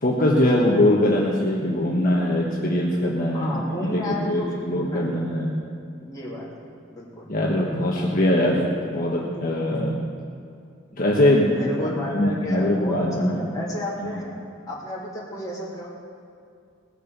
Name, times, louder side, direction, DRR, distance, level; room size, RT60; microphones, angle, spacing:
voice 1, 0.0-5.5 7.3-8.6 8.9-9.9 10.9-11.5 11.8-11.9 12.1-13.4 14.0-14.1, left 1 dB, 45° left, -4 dB, 1.3 m, -22 dB
voice 2, 3.3-5.5 6.0-6.5 6.9-7.3 11.5-14.3 14.7-15.9, left 1 dB, 20° left, -6 dB, 3.0 m, -32 dB
19.5 x 6.6 x 6.8 m, 2.4 s
head